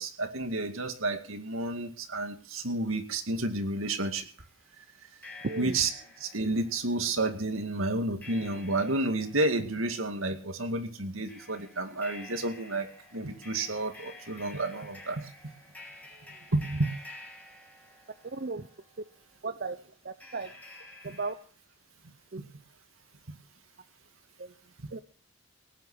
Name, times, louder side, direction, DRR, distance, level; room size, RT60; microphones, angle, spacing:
voice 1, 0.0-4.3 5.6-5.9 6.2-15.3 16.5-16.9 22.4-22.5 23.3-23.4 24.8-24.9, right 2 dB, 80° right, 7 dB, 2.2 m, -31 dB
sound 1, 4.4-4.5 5.2-19.2 20.2-21.3, left 2 dB, 10° left, 2.7 m, -50 dB
voice 2, 5.4-5.8 18.2-18.7 19.0-19.1 19.4-20.5 21.0-21.4 22.3-22.4 24.4-24.5 24.9-25.0, right 3 dB, 50° right, 11 dB, 0.7 m, -36 dB
18.5 x 9.5 x 6.3 m, 0.40 s
head